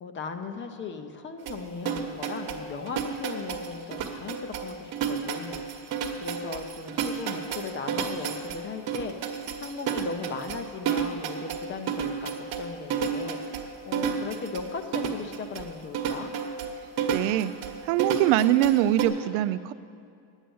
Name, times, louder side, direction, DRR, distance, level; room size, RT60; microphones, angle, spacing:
voice 1, 0.0-5.9 6.2-13.4 13.9-16.3, left 4 dB, 25° left, 7 dB, 0.6 m, -37 dB
sound 1, 1.5-19.1, right 6 dB, 50° right, 1.2 m, -31 dB
voice 2, 17.1-17.5 17.8-19.7, right 13 dB, 80° right, 14 dB, 0.6 m, -23 dB
10.0 x 8.9 x 7.0 m, 2.4 s
cardioid pair, 145°, 48 cm